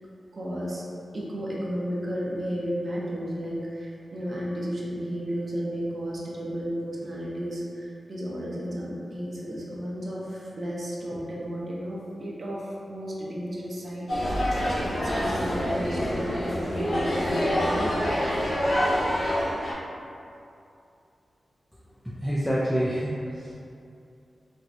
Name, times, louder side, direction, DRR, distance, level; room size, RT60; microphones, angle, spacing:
voice 1, 0.3-0.8 1.1-17.9, equal, 50° right, -5 dB, 0.5 m, -33 dB
sound 1, 14.1-19.7, equal, 70° left, 0.8 m, -26 dB
voice 2, 22.0-23.5, equal, 5° left, -7 dB, 0.3 m, -27 dB
4.1 x 2.2 x 2.5 m, 2.6 s
wide cardioid pair, 120°, 0 cm